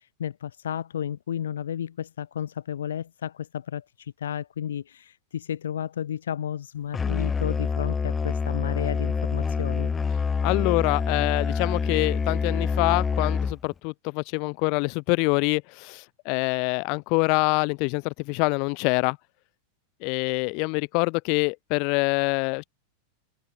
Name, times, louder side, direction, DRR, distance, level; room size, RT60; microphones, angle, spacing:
voice 1, 0.0-9.9, left 9 dB, 65° left, 2.5 m, -32 dB
Musical instrument, 6.9-13.7, left 5 dB, 15° left, 0.7 m, -26 dB
voice 2, 10.4-19.2 20.0-22.7, left 35 dB, 45° left, 1.1 m, -25 dB
figure-of-eight pair, 90°, 0 cm